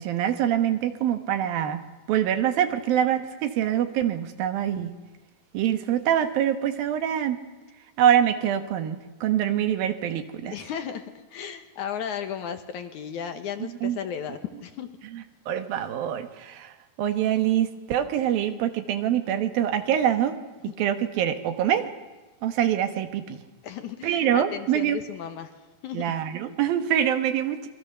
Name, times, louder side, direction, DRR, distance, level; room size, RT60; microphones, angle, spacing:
voice 1, 0.0-1.8 2.1-4.9 5.5-7.4 8.0-10.6 13.8-14.0 15.0-20.4 20.6-21.9 22.4-23.4 24.0-25.0 25.9-27.7, right 10 dB, 80° right, 9 dB, 3.1 m, -25 dB
voice 2, 10.4-11.1 11.3-14.9 23.6-25.5 25.8-26.1, left 8 dB, 65° left, 8 dB, 2.3 m, -34 dB
28.0 x 22.5 x 6.8 m, 1.2 s
omnidirectional pair, 4.2 m